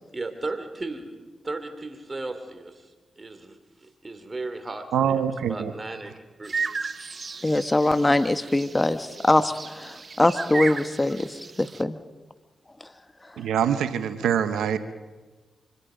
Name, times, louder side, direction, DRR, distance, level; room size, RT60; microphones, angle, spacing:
voice 1, 0.1-1.1 1.4-2.9 3.2-6.5, right 2 dB, 35° right, 8 dB, 3.2 m, -36 dB
voice 2, 4.9-5.7 13.4-14.8, right 8 dB, 85° right, 11 dB, 0.9 m, -24 dB
sound 1, 6.4-11.8, right 4 dB, 50° right, 1.0 m, -34 dB
voice 3, 7.4-12.0 12.8-12.9, left 2 dB, 25° left, 10 dB, 1.4 m, -23 dB
25.0 x 25.0 x 5.2 m, 1.3 s
supercardioid pair, 45°, 0 cm